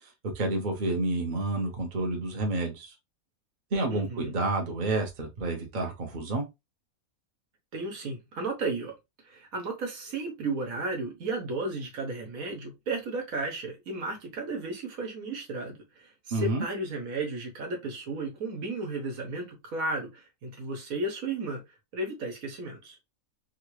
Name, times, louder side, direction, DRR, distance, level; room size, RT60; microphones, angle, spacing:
voice 1, 0.2-2.9 3.7-6.5 16.3-16.6, right 2 dB, 40° right, 0.9 m, -29 dB
voice 2, 3.9-4.3 7.7-8.9 9.2-21.6 21.9-23.0, right 2 dB, 75° right, 1.5 m, -34 dB
3.8 x 2.2 x 3.1 m
omnidirectional pair, 1.5 m